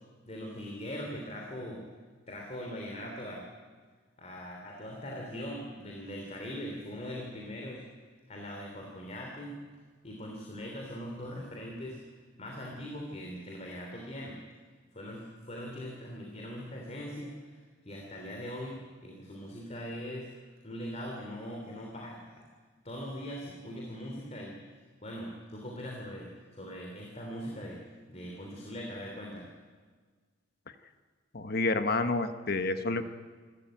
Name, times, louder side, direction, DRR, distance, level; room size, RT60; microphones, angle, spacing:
voice 1, 0.2-1.8 2.3-3.5 4.2-7.8 8.3-9.6 10.0-12.0 12.4-14.4 14.9-17.6 17.8-20.3 20.6-22.4 22.8-24.5 25.0-27.8 28.1-29.5, equal, 35° left, 0 dB, 3.3 m, -41 dB
voice 2, 31.3-33.0, left 3 dB, 55° left, 9 dB, 1.2 m, -29 dB
27.0 x 13.5 x 9.0 m, 1.5 s
head